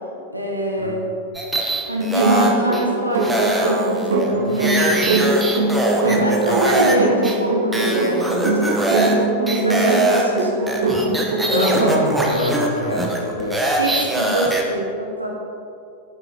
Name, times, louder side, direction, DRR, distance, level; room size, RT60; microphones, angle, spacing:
voice 1, 0.3-1.1 1.9-5.5 6.2-10.9 13.8-15.3, equal, 85° right, -1 dB, 1.4 m, -24 dB
sound 1, 1.3-2.8 3.2-7.0 7.2-7.3 7.7-9.2 9.5-14.6, right 2 dB, 5° right, 1.3 m, -22 dB
sound 2, 2.2-12.1, right 3 dB, 60° right, 1.2 m, -22 dB
voice 2, 11.4-13.6, left 1 dB, 80° left, -1 dB, 1.2 m, -24 dB
9.0 x 8.3 x 4.5 m, 2.6 s
figure-of-eight pair, 90°, 0 cm